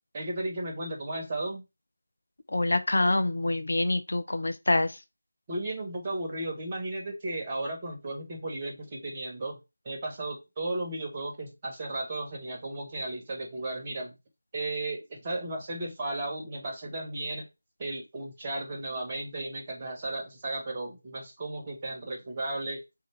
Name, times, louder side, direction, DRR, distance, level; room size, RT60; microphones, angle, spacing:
voice 1, 0.1-1.6 5.5-9.6 9.8-14.1 14.5-17.5 17.8-22.8, right 2 dB, 25° right, 1.3 m, -35 dB
voice 2, 2.5-5.0, left 2 dB, 55° left, 0.6 m, -26 dB
3.6 x 3.2 x 4.5 m
figure-of-eight pair, 160°, 0 cm